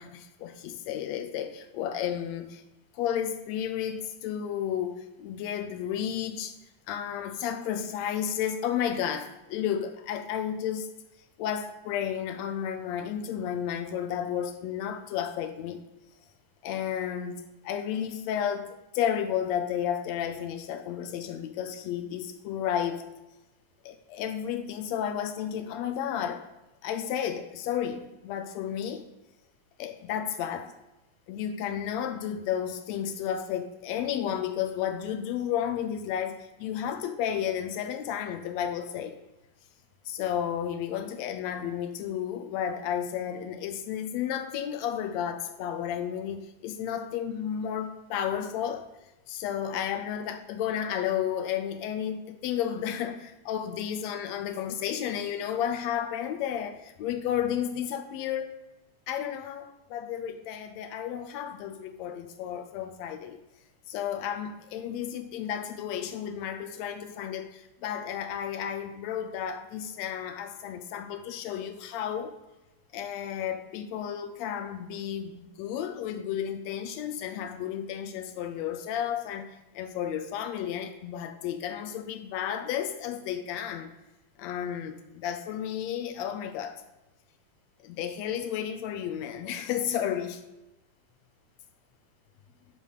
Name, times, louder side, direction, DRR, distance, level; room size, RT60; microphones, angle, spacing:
voice 1, 0.0-2.6 2.9-6.5 6.9-10.9 11.4-15.8 16.6-23.0 23.8-26.4 26.8-29.1 29.8-30.7 31.3-39.2 40.0-48.9 49.3-58.6 59.1-63.4 63.9-72.3 72.9-79.5 79.7-83.9 84.4-86.8 87.8-90.4, left 9 dB, 85° left, 7 dB, 1.5 m, -32 dB
10.5 x 4.1 x 6.4 m, 0.96 s
omnidirectional pair, 3.8 m